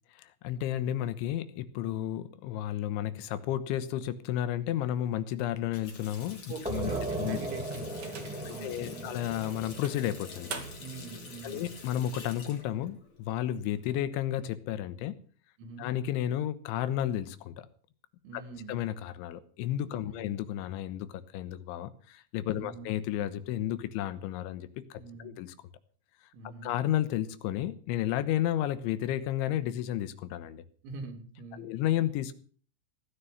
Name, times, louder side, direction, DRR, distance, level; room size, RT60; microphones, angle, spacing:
voice 1, 0.2-7.4 8.5-10.7 11.4-15.2 15.8-17.7 18.3-18.4 18.7-25.5 26.6-30.6 31.5-32.3, left 12 dB, 85° left, 13 dB, 3.3 m, -32 dB
Water tap faucet, 5.5-14.0, left 4 dB, 35° left, 2.9 m, -49 dB
voice 2, 6.5-9.1 10.8-11.7 15.6-15.9 18.2-18.8 19.9-20.3 22.5-22.9 25.0-25.4 26.3-26.7 30.8-31.7, right 4 dB, 75° right, 4 dB, 5.1 m, -44 dB
sound 1, 6.6-12.0, right 2 dB, ahead, 2.2 m, -38 dB
sound 2, 6.9-8.6 9.1-9.3 9.8-11.0, right 5 dB, 45° right, 2.6 m, -45 dB
16.5 x 10.0 x 6.7 m, 0.43 s
omnidirectional pair, 5.5 m